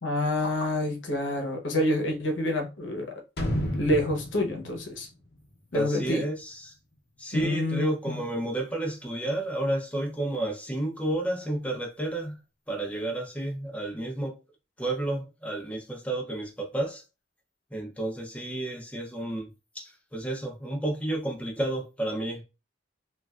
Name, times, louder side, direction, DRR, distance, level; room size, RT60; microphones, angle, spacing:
voice 1, 0.0-3.2 3.8-5.1 5.7-6.3 7.3-8.2, left 1 dB, 90° left, 0.8 m, -28 dB
sound 1, 3.4-6.2 6.5-6.6, equal, 60° left, 0.7 m, -32 dB
voice 2, 5.7-6.7 7.2-12.4 12.7-14.4 14.8-17.0 17.7-19.5 19.7-22.4, right 1 dB, 5° left, 0.6 m, -31 dB
3.1 x 2.4 x 2.3 m
head